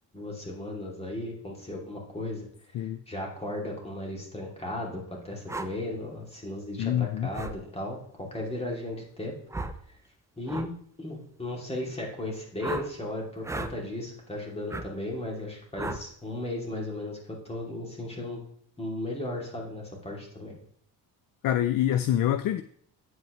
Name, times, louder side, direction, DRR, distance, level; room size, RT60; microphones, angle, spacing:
voice 1, 0.1-2.5 2.8-9.4 10.4-10.7 11.0-18.4 18.8-20.5, left 1 dB, 15° left, -1 dB, 2.7 m, -36 dB
sound 1, 5.5-5.7 7.3-7.6 9.5-9.8 10.5-10.7 12.6-12.9 13.4-13.7 14.7-14.9 15.8-16.0, right 2 dB, 5° right, 0.5 m, -34 dB
voice 2, 6.8-7.3 21.4-22.6, left 11 dB, 55° left, 12 dB, 0.5 m, -26 dB
9.2 x 7.9 x 3.1 m, 0.62 s
cardioid pair, 120°, 42 cm